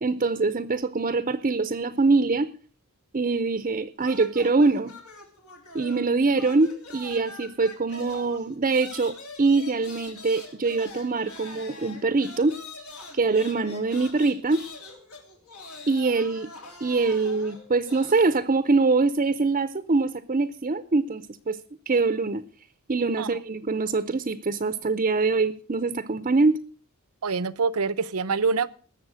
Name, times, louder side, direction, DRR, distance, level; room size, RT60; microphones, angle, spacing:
voice 1, 0.0-2.5 3.1-4.9 5.7-12.5 13.1-14.6 15.9-16.5 16.8-21.6 21.9-22.4 22.9-26.6, right 3 dB, 35° right, 0.7 m, -24 dB
sound 1, 4.0-6.1 6.4-18.3, left 3 dB, 70° left, 3.5 m, -44 dB
voice 2, 27.2-28.7, right 4 dB, 75° right, 0.7 m, -25 dB
19.5 x 7.2 x 6.3 m
head